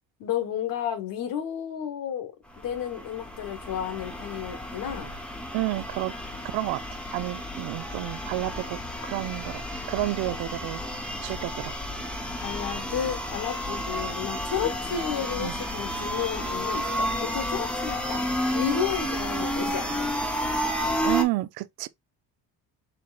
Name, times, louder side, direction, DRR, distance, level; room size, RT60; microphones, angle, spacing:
voice 1, 0.2-2.3 2.6-5.1 12.4-20.1 20.7-20.8, left 9 dB, 65° left, 1.4 m, -32 dB
sound 1, 2.5-21.2, equal, 5° left, 0.6 m, -31 dB
voice 2, 5.5-6.2 6.5-6.8 7.1-9.6 9.9-10.8 11.2-11.7 15.4-15.5 21.0-21.9, right 18 dB, 75° right, 0.5 m, -30 dB
4.6 x 3.7 x 2.4 m
cardioid pair, 160°, 36 cm